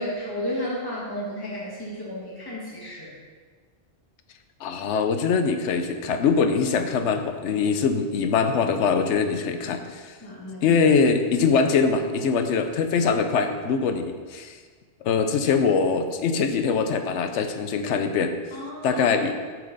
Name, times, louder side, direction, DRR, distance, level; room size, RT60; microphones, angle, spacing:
voice 1, 0.0-3.1 10.2-10.8 18.5-19.0, left 1 dB, 20° left, -6 dB, 1.6 m, -32 dB
voice 2, 4.6-10.2 10.6-14.6 15.0-18.3 18.8-19.4, left 5 dB, 90° left, 7 dB, 1.0 m, -23 dB
7.2 x 5.9 x 3.9 m, 1.6 s
omnidirectional pair, 1.2 m